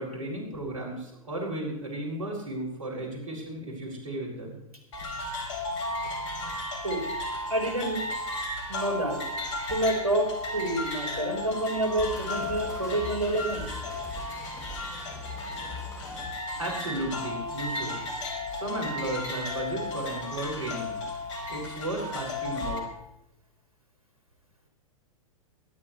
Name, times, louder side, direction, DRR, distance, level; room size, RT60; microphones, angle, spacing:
voice 1, 0.0-4.6 16.5-18.0 18.5-21.0 21.5-22.8, right 1 dB, 70° right, -2 dB, 7.1 m, -34 dB
sound 1, 4.9-22.8, left 2 dB, 60° left, 4.6 m, -34 dB
voice 2, 7.5-8.0 8.7-9.2 9.6-13.7, right 1 dB, 90° right, 2 dB, 4.5 m, -28 dB
sound 2, 12.0-16.3, left 3 dB, 15° left, 5.5 m, -41 dB
23.0 x 12.0 x 3.3 m, 0.85 s
figure-of-eight pair, 100°, 18 cm